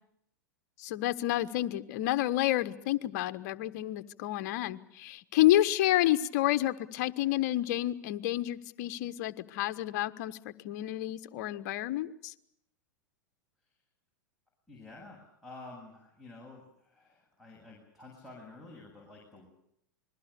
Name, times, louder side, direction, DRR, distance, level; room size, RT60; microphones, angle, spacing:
voice 1, 0.8-12.3, left 14 dB, 55° left, 12 dB, 1.3 m, -29 dB
voice 2, 14.7-19.5, left 2 dB, ahead, 1 dB, 7.9 m, -50 dB
28.0 x 21.5 x 7.0 m, 0.77 s
hypercardioid pair, 100°, 10 cm